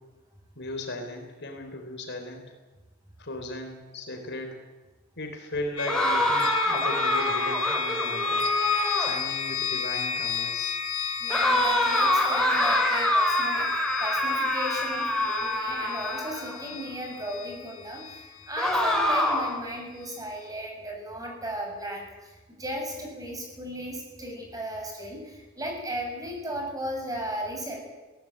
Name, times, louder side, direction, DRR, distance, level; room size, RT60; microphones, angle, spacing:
voice 1, 0.6-2.4 3.2-4.6 5.2-8.5 9.0-10.7, left 1 dB, 55° left, 4 dB, 3.9 m, -37 dB
sound 1, 5.8-19.6, left 6 dB, 75° left, 1.7 m, -33 dB
sound 2, 5.9-9.3 11.3-16.6 18.6-19.6, left 1 dB, 5° left, 4.2 m, -25 dB
voice 2, 11.2-27.8, equal, 15° right, 1 dB, 7.1 m, -36 dB
21.5 x 17.5 x 9.1 m, 1.2 s
head